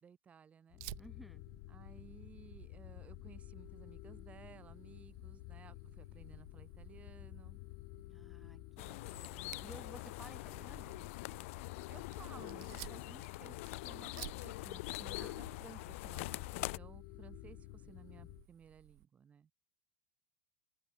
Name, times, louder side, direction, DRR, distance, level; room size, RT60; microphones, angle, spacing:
voice 1, 0.0-0.8 1.7-7.6 11.9-13.6 13.8-19.5, right 7 dB, 15° right, 2.3 m, -57 dB
sound 1, 0.7-18.5, left 29 dB, 45° left, 1.0 m, -52 dB
Fire, 0.8-19.1, right 38 dB, 45° right, 1.2 m, -57 dB
voice 2, 1.0-1.4 8.1-11.0 15.2-15.4 17.5-17.6, right 1 dB, ahead, 2.0 m, -56 dB
sound 2, 8.8-16.8, left 21 dB, 60° left, 1.4 m, -44 dB
open air
supercardioid pair, 170°, 8 cm